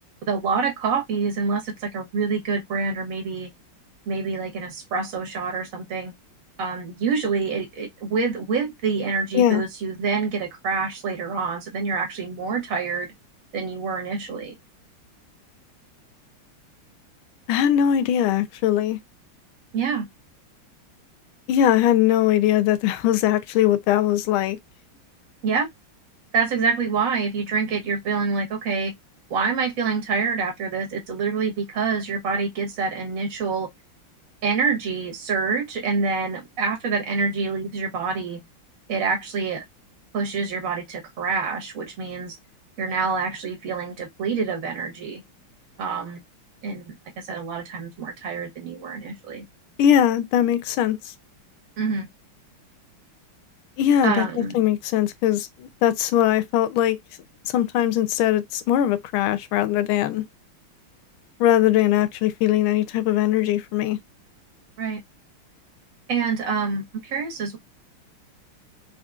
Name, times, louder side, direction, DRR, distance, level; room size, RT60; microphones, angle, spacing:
voice 1, 0.3-3.5 4.1-6.1 6.6-13.1 13.5-14.6 19.7-20.1 25.4-25.7 26.3-28.9 29.3-33.7 34.4-38.4 38.9-39.6 40.1-42.4 42.8-45.2 45.8-46.2 46.6-49.4 51.8-52.1 54.0-54.5 64.8-65.0 66.1-67.6, right 5 dB, 45° right, 1.3 m, -26 dB
voice 2, 17.5-19.0 21.5-24.6 49.8-51.0 53.8-57.0 57.5-60.2 61.4-64.0, left 11 dB, 80° left, 1.4 m, -20 dB
3.8 x 2.9 x 2.3 m
omnidirectional pair, 2.3 m